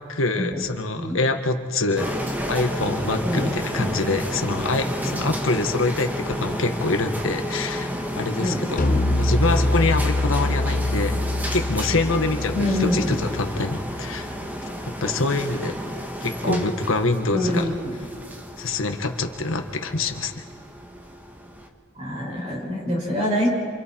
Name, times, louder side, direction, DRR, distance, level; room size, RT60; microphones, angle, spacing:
voice 1, 0.1-2.1 2.5-8.8 9.2-11.2 11.5-14.3 14.9-15.8 16.2-17.7 18.6-20.4, left 3 dB, 85° left, 6 dB, 1.6 m, -25 dB
sound 1, 2.0-21.7, equal, 10° right, 1.7 m, -31 dB
voice 2, 8.4-9.0 12.5-13.2 16.4-16.6 17.3-17.9 22.0-23.5, left 1 dB, 35° right, -2 dB, 6.7 m, -25 dB
sound 2, 8.8-14.2, left 1 dB, 40° left, 1.1 m, -25 dB
28.0 x 27.5 x 4.6 m, 2.2 s
head